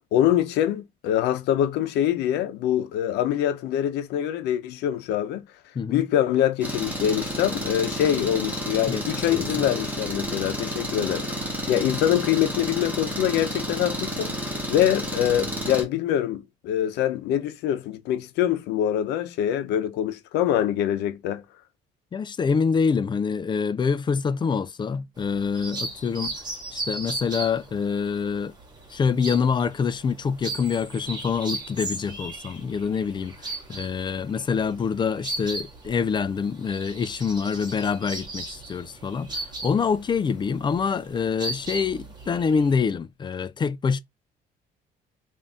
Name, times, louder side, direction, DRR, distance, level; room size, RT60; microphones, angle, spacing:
voice 1, 0.1-5.4 5.9-11.4 11.7-21.4, left 11 dB, 85° left, 0.8 m, -24 dB
voice 2, 5.7-6.1 8.9-9.4 22.1-26.4 26.7-28.5 28.9-44.0, left 6 dB, 25° left, 0.4 m, -26 dB
Engine, 6.6-15.8, equal, 10° right, 1.5 m, -31 dB
sound 1, 25.2-42.8, right 2 dB, 25° right, 1.6 m, -37 dB
3.8 x 2.6 x 3.6 m
cardioid pair, 110°, 17 cm